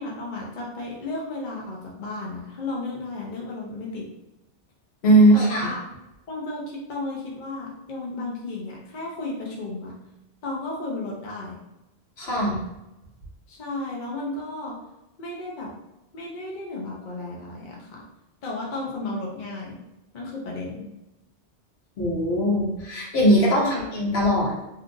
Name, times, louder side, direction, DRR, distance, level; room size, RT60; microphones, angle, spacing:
voice 1, 0.0-4.1 5.3-5.8 6.3-9.9 10.4-11.6 13.5-14.8 15.2-15.7 16.1-18.0 18.4-19.8 20.1-20.9 23.6-23.9, left 2 dB, 50° left, -3 dB, 0.7 m, -33 dB
voice 2, 5.0-5.7 12.2-12.6 22.0-24.5, right 1 dB, 65° left, -3 dB, 1.1 m, -20 dB
2.7 x 2.4 x 3.7 m, 0.94 s
omnidirectional pair, 1.2 m